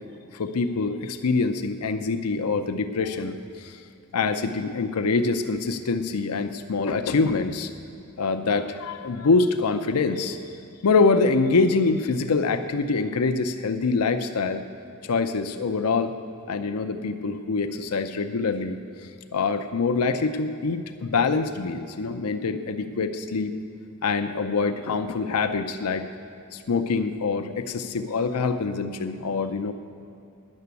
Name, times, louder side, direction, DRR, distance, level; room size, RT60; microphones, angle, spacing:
voice 1, 0.3-3.8 4.1-7.7 8.2-10.4 10.8-14.6 15.0-16.1 16.5-18.8 19.3-23.5 24.0-26.1 26.5-29.7, left 4 dB, 90° left, 8 dB, 0.5 m, -25 dB
10.5 x 6.8 x 8.2 m, 2.6 s
head